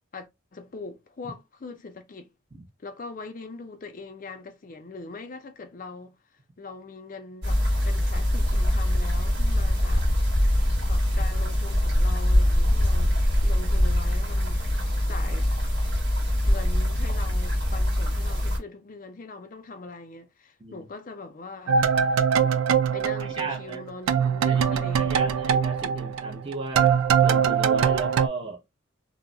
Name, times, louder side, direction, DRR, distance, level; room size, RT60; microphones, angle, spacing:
voice 1, 0.1-2.3 2.8-6.2 6.6-10.1 10.9-15.6 16.5-21.8 22.9-25.2, left 3 dB, 40° left, 0.4 m, -41 dB
sound 1, 7.4-18.6, left 1 dB, 50° right, 1.2 m, -23 dB
sound 2, 21.7-23.8 24.1-28.3, right 7 dB, 90° right, 0.3 m, -22 dB
voice 2, 23.2-23.8 24.5-26.9 27.2-28.6, right 2 dB, 25° right, 0.7 m, -35 dB
2.3 x 2.0 x 3.7 m
head